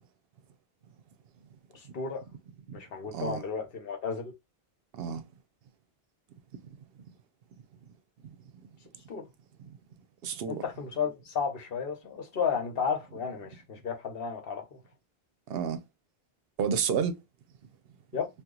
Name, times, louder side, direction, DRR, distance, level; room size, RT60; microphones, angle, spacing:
voice 1, 1.7-2.2 2.7-4.3 9.1-9.2 10.5-14.8 18.1-18.3, left 6 dB, 65° left, 1.1 m, -33 dB
voice 2, 3.1-3.4 4.9-5.2 8.2-8.4 9.6-9.8 10.2-10.6 15.5-15.8 16.6-17.2, right 7 dB, 70° right, 0.8 m, -31 dB
2.9 x 2.4 x 3.7 m
omnidirectional pair, 1.0 m